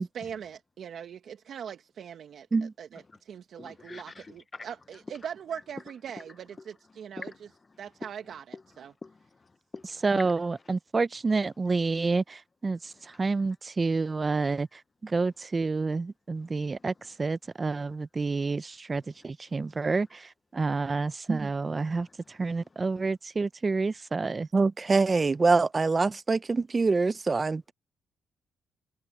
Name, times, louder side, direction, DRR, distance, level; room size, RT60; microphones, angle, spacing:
voice 1, 0.0-7.3 7.8-8.9, right 8 dB, 60° right, 1.7 m, -41 dB
voice 2, 3.6-4.7 7.2-7.4 8.0-8.1 8.5-8.6 9.0-10.3 12.9-13.5 16.4-16.9 17.9-18.0 19.7-19.8 20.8-20.9 21.8-22.7 24.3-24.4, left 3 dB, 30° left, 0.9 m, -46 dB
voice 3, 10.0-12.8 13.2-14.7 15.0-16.9 17.2-20.2 20.5-22.1 22.4-27.7, right 4 dB, 30° right, 0.7 m, -27 dB
cardioid pair, 90°, 0 cm